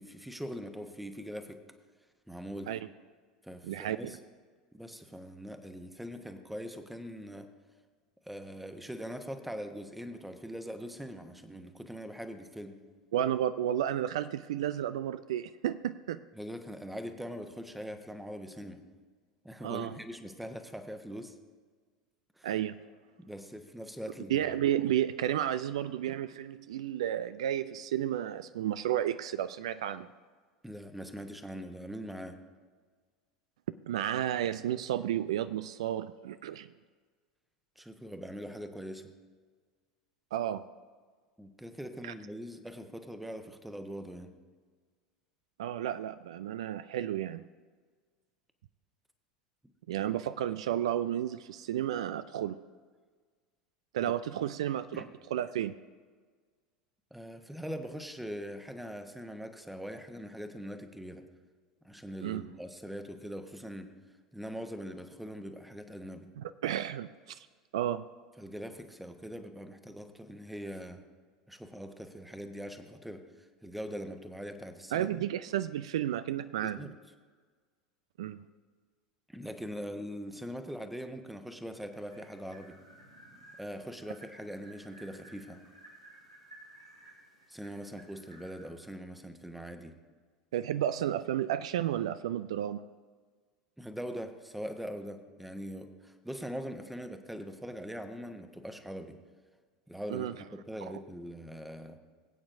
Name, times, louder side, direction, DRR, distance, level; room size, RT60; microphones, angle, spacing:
voice 1, 0.0-1.6 2.3-2.7 3.4-4.2 4.7-7.5 8.2-12.8 16.4-18.8 19.4-21.4 22.4-22.5 23.2-24.5 30.6-32.4 37.8-39.1 41.4-44.3 50.0-50.1 54.0-54.1 54.9-55.1 57.1-61.2 61.8-63.9 64.3-66.3 68.4-71.0 71.5-73.2 73.6-75.2 76.6-76.9 79.3-82.8 83.6-85.6 87.5-89.9 93.8-99.1 99.9-102.0, equal, 5° right, 7 dB, 1.1 m, -42 dB
voice 2, 3.6-4.2 13.1-16.2 19.6-20.0 22.4-22.8 24.3-30.1 33.9-36.7 40.3-40.6 42.0-42.1 45.6-47.4 49.9-52.6 53.9-55.1 55.3-55.8 62.2-62.5 66.4-67.5 67.7-68.1 74.9-76.8 78.2-78.4 90.5-92.9 100.1-100.3 100.8-100.9, right 11 dB, 65° right, 13 dB, 0.3 m, -32 dB
sound 1, 81.9-88.7, right 1 dB, 90° right, 2.7 m, -56 dB
21.5 x 8.6 x 2.6 m, 1.5 s
figure-of-eight pair, 80°, 3 cm